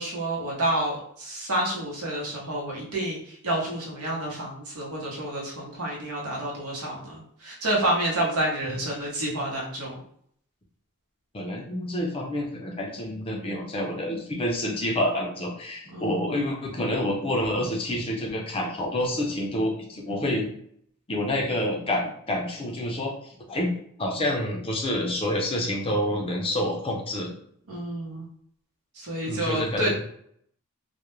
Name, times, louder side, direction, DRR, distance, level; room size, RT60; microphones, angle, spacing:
voice 1, 0.0-10.0 15.9-16.3 27.7-28.3 29.0-29.9, right 1 dB, 80° right, -2 dB, 0.8 m, -29 dB
voice 2, 11.3-20.5 21.1-23.7 24.0-27.3 29.2-30.0, left 1 dB, 25° left, 0 dB, 0.4 m, -28 dB
2.3 x 2.1 x 3.0 m, 0.66 s
head